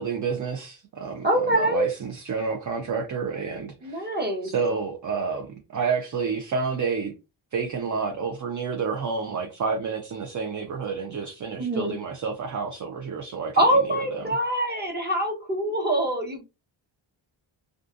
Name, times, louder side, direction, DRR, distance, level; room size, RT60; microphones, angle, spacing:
voice 1, 0.0-4.1 4.4-7.1 7.5-14.4, right 5 dB, 40° right, 0.5 m, -30 dB
voice 2, 1.2-1.9 3.8-4.5 11.6-11.9 13.6-16.4, right 1 dB, 20° right, 1.1 m, -24 dB
2.5 x 2.4 x 2.5 m
cardioid pair, 80°, 49 cm